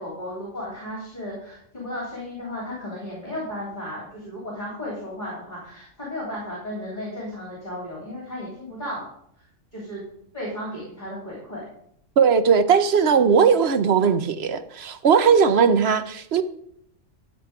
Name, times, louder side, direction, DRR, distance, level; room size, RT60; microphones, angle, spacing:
voice 1, 0.0-9.0 9.4-9.5 9.7-10.0 10.3-11.6, left 1 dB, 40° left, 3.5 m, -34 dB
voice 2, 12.2-16.4, right 6 dB, 60° right, 1.0 m, -18 dB
13.0 x 7.4 x 5.0 m
omnidirectional pair, 1.3 m